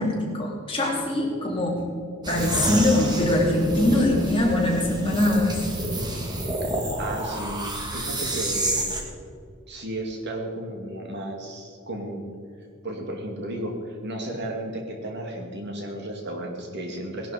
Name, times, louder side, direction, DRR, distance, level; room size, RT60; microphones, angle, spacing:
voice 1, 0.0-1.8 2.3-5.5, left 1 dB, 25° left, -3 dB, 3.3 m, -22 dB
sound 1, 2.2-9.0, right 1 dB, 20° right, 2.0 m, -29 dB
voice 2, 6.6-8.9 9.7-12.3 12.8-17.3, right 1 dB, 55° right, 2 dB, 2.3 m, -34 dB
18.5 x 11.5 x 5.1 m, 2.2 s
head